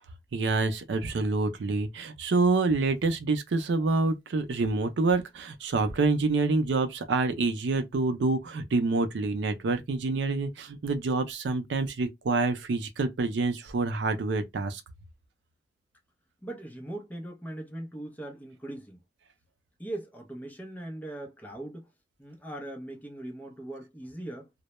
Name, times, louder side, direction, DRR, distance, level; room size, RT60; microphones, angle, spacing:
voice 1, 0.3-14.8, right 3 dB, 90° right, 0.4 m, -27 dB
voice 2, 16.4-19.0 19.8-21.9 22.2-24.5, right 1 dB, 10° left, 0.5 m, -40 dB
2.1 x 2.0 x 2.9 m
head